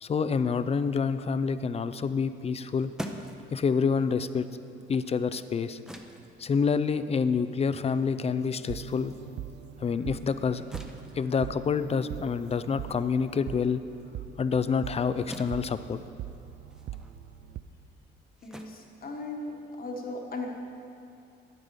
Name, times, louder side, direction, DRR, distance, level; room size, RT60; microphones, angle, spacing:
voice 1, 0.0-2.9 3.5-4.5 4.9-5.8 6.4-9.1 9.8-10.6 11.2-13.8 14.4-16.0, left 5 dB, 30° left, 13 dB, 0.4 m, -27 dB
sound 1, 2.4-9.2 9.6-19.8, equal, 5° right, 0.7 m, -47 dB
sound 2, 7.7-17.6, right 11 dB, 60° right, 0.4 m, -42 dB
voice 2, 18.4-20.5, left 2 dB, 45° left, 2 dB, 1.4 m, -37 dB
8.8 x 8.1 x 5.5 m, 2.6 s
cardioid pair, 90°, 20 cm